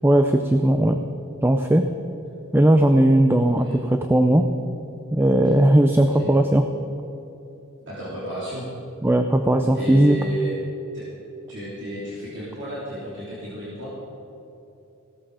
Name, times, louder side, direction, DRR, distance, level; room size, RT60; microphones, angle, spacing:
voice 1, 0.0-1.0 1.4-1.9 2.5-4.5 5.1-6.7 9.0-10.2, right 1 dB, 10° right, 6 dB, 0.4 m, -18 dB
voice 2, 3.4-3.8 5.4-5.5 6.0-6.4 7.9-8.7 9.7-10.5 10.9-11.0 11.5-13.9, equal, 55° right, -9 dB, 3.4 m, -33 dB
16.5 x 13.5 x 5.0 m, 3.0 s
head